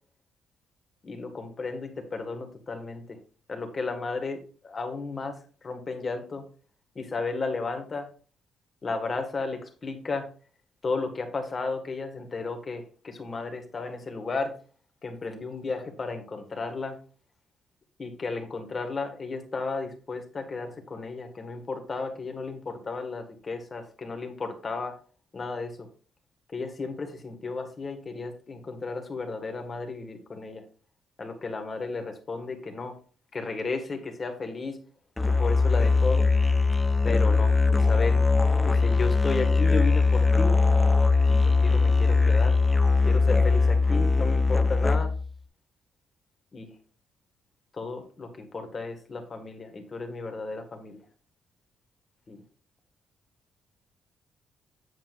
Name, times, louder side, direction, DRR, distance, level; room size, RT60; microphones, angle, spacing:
voice 1, 1.0-3.2 3.5-5.4 5.6-6.4 6.9-8.1 8.8-10.3 10.8-14.5 15.0-17.0 18.0-24.9 25.3-25.9 26.5-30.6 31.2-32.9 33.3-34.8 35.3-36.2 37.0-38.2 38.6-40.6 41.3-42.6 43.0-45.1 46.5-46.7 47.8-51.0 52.3-52.4, left 3 dB, 35° left, 5 dB, 1.6 m, -33 dB
Musical instrument, 35.2-45.3, left 4 dB, 15° left, 0.6 m, -21 dB
7.9 x 7.3 x 2.4 m, 0.38 s
cardioid pair, 90°, 0 cm